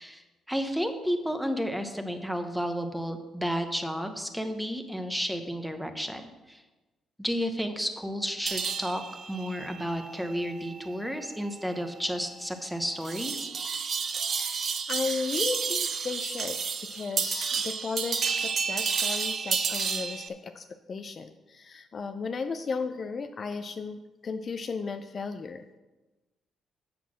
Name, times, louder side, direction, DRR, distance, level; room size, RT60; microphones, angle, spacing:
voice 1, 0.0-6.6 7.2-9.0 9.3-13.5, equal, ahead, 7 dB, 0.8 m, -32 dB
sound 1, 8.5-20.3, right 6 dB, 40° right, 0.5 m, -32 dB
voice 2, 14.3-16.6 16.9-25.6, left 4 dB, 35° left, 8 dB, 0.4 m, -35 dB
8.1 x 6.1 x 6.0 m, 1.1 s
cardioid pair, 145°, 0 cm